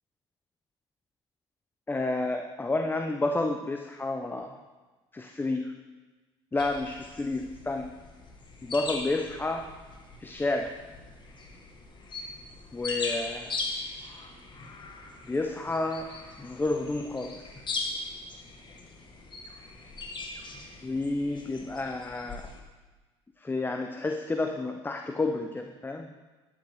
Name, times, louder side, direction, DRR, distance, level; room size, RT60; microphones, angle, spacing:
voice 1, 1.9-4.6 5.1-5.7 6.5-7.9 8.6-9.7 10.2-10.8 12.7-13.6 15.2-16.1 16.4-17.5 20.8-22.5 23.4-26.1, left 2 dB, 15° left, 5 dB, 0.7 m, -30 dB
sound 1, 6.6-22.6, left 3 dB, 35° left, 1.5 m, -40 dB
11.5 x 8.1 x 3.5 m, 1.2 s
hypercardioid pair, 65°, 14 cm